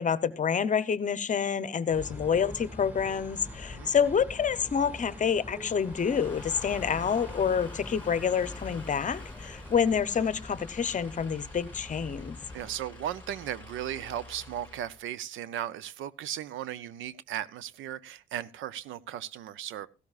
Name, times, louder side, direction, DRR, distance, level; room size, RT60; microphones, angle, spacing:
voice 1, 0.0-12.4, left 7 dB, 40° left, 15 dB, 0.8 m, -28 dB
sound 1, 1.9-12.7, left 1 dB, 10° right, 2.3 m, -44 dB
sound 2, 5.7-15.1, left 3 dB, 10° left, 2.3 m, -47 dB
voice 2, 12.5-19.9, right 11 dB, 85° right, 18 dB, 0.6 m, -36 dB
16.0 x 13.0 x 2.4 m, 0.32 s
cardioid pair, 90°, 20 cm